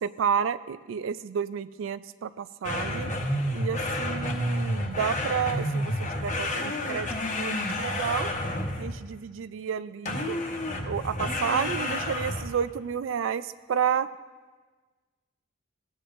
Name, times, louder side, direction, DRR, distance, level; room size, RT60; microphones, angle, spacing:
voice 1, 0.0-3.1 3.5-8.3 8.8-10.4 10.8-14.1, right 7 dB, 85° right, 15 dB, 0.4 m, -31 dB
sound 1, 2.6-9.1 10.1-12.6, left 1 dB, 40° left, 1.0 m, -30 dB
17.0 x 8.8 x 2.5 m, 1.4 s
head